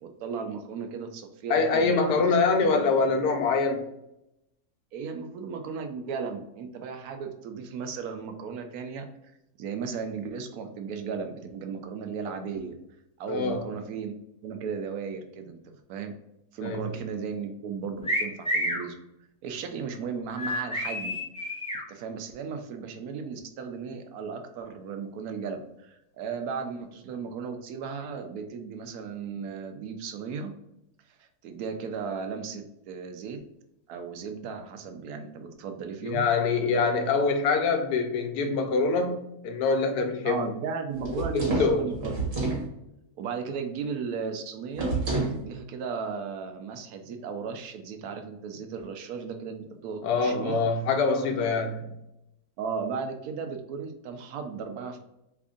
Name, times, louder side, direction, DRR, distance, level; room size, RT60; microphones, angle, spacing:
voice 1, 0.0-2.2 4.9-9.0 9.6-12.7 13.2-16.1 16.5-19.0 19.4-21.2 21.9-30.5 31.2-33.4 33.9-36.3 40.2-42.4 43.2-45.0 45.4-50.6 52.6-55.0, right 5 dB, 75° right, 6 dB, 1.0 m, -35 dB
voice 2, 1.5-3.8 13.3-13.6 16.6-16.9 36.0-39.2 39.4-40.4 41.2-41.9 50.0-51.9, left 4 dB, 85° left, 4 dB, 1.2 m, -24 dB
sound 1, 18.0-18.8 20.4-21.8, equal, 10° left, 0.3 m, -29 dB
sound 2, 41.0-42.7 44.8-45.4, right 3 dB, 55° right, 1.6 m, -28 dB
3.4 x 2.4 x 3.6 m, 0.84 s
omnidirectional pair, 1.6 m